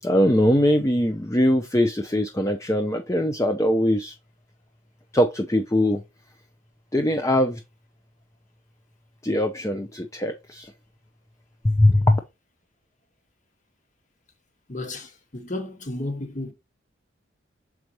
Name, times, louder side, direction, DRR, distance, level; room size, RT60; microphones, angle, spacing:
voice 1, 0.0-4.1 5.1-6.0 6.9-7.6 9.2-10.7 11.6-12.2, left 1 dB, 15° left, 0.6 m, -21 dB
voice 2, 14.7-16.5, left 2 dB, 40° left, 1.7 m, -33 dB
6.7 x 4.8 x 3.0 m
head